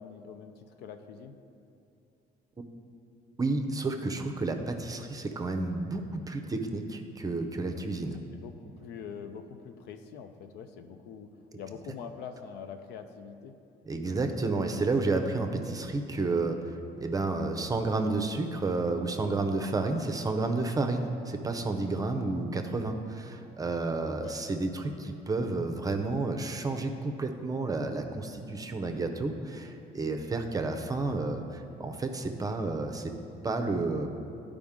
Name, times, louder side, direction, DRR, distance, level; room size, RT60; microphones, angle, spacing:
voice 1, 0.0-1.3 8.3-11.3 11.6-13.5 24.2-24.3 30.4-30.7, left 7 dB, 80° left, 7 dB, 0.6 m, -44 dB
voice 2, 3.4-8.2 13.8-33.1 33.4-34.1, right 3 dB, 20° right, 5 dB, 0.6 m, -31 dB
11.5 x 5.0 x 3.6 m, 2.6 s
cardioid pair, 110°, 17 cm